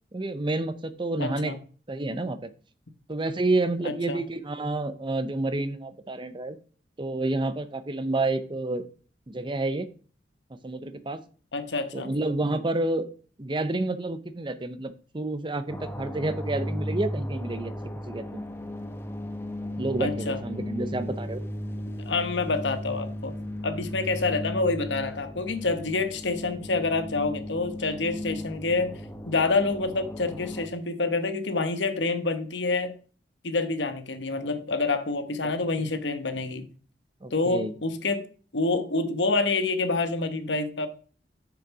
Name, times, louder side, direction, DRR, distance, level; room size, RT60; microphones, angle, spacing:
voice 1, 0.1-1.6 1.9-2.5 3.1-6.6 7.0-8.9 9.3-9.9 10.5-11.2 11.9-13.1 13.4-17.7 18.1-18.4 19.8-21.4 35.8-35.9 37.2-37.7, right 2 dB, 25° right, 0.7 m, -29 dB
voice 2, 1.2-1.6 3.8-4.2 11.5-12.1 20.0-20.4 22.1-23.3 23.6-28.9 29.2-32.9 33.4-36.7 37.3-38.2 38.5-40.9, left 3 dB, 85° left, 1.1 m, -27 dB
sound 1, 15.7-30.7, left 1 dB, 15° left, 0.9 m, -36 dB
6.9 x 6.5 x 4.8 m
head